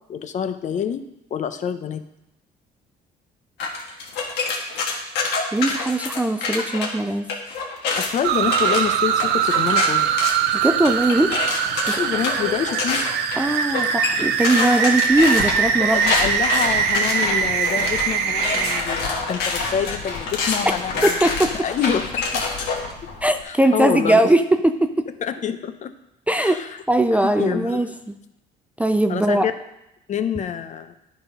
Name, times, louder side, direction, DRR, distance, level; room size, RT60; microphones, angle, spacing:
voice 1, 0.1-1.0 1.3-2.0 8.0-10.1 11.7-13.0 15.9-21.2 21.6-22.4 23.4-24.3 25.2-25.9 26.4-26.8 27.2-27.8 29.1-29.5 30.1-30.9, left 8 dB, 45° left, 10 dB, 0.6 m, -26 dB
sound 1, 3.6-6.9 7.3-22.9, left 4 dB, 85° left, 1.5 m, -27 dB
voice 2, 5.5-7.3 10.6-11.4 11.9-12.0 13.4-16.0 21.0-21.5 23.2-25.1 26.3-26.6 26.9-28.2 28.8-29.5, right 1 dB, 10° right, 8 dB, 0.4 m, -20 dB
sound 2, 8.2-18.8, right 8 dB, 80° right, 0.6 m, -22 dB
sound 3, 15.1-23.4, left 3 dB, 70° left, 2.2 m, -31 dB
10.5 x 4.1 x 5.3 m, 0.85 s
cardioid pair, 110°, 17 cm